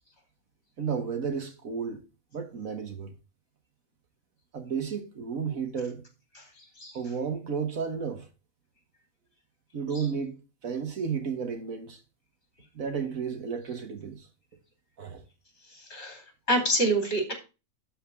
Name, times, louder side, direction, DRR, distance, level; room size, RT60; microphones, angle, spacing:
voice 1, 0.8-2.0 2.3-3.1 4.5-6.0 6.9-8.3 9.7-12.0 12.8-14.3 15.0-15.2, right 6 dB, 70° right, 1.8 m, -32 dB
voice 2, 15.9-16.2 16.5-17.3, right 1 dB, 45° left, 3.9 m, -26 dB
11.5 x 4.3 x 7.0 m
omnidirectional pair, 1.5 m